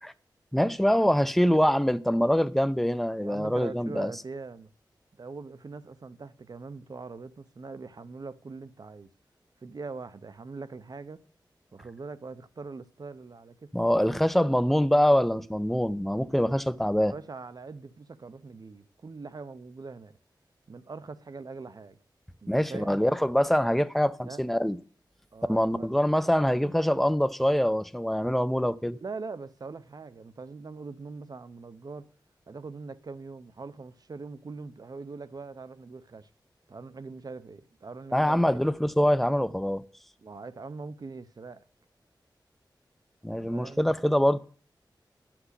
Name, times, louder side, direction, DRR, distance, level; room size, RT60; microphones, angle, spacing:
voice 1, 0.5-4.1 13.7-17.1 22.5-24.8 25.5-29.0 38.1-39.8 43.2-44.4, equal, ahead, 0.6 m, -24 dB
voice 2, 3.2-4.7 5.2-9.1 9.6-11.2 11.7-14.0 17.0-20.2 20.7-22.0 22.4-23.0 24.2-24.4 25.3-25.9 29.0-32.1 32.5-36.3 36.7-38.6 40.2-41.6 43.2-43.9, right 4 dB, 55° right, 0.8 m, -42 dB
9.4 x 6.0 x 8.2 m
wide cardioid pair, 90°, 8 cm